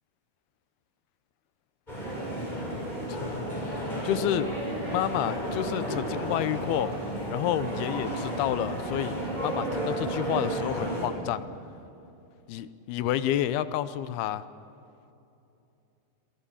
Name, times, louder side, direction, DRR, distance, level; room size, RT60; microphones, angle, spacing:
sound 1, 1.9-11.1, right 1 dB, 10° left, 7.6 m, -32 dB
voice 1, 3.1-3.5 4.0-4.5 4.9-6.9 7.3-9.2 9.4-11.5 12.5-14.4, left 12 dB, 75° left, 14 dB, 2.5 m, -29 dB
27.5 x 23.5 x 7.1 m, 2.8 s
omnidirectional pair, 5.0 m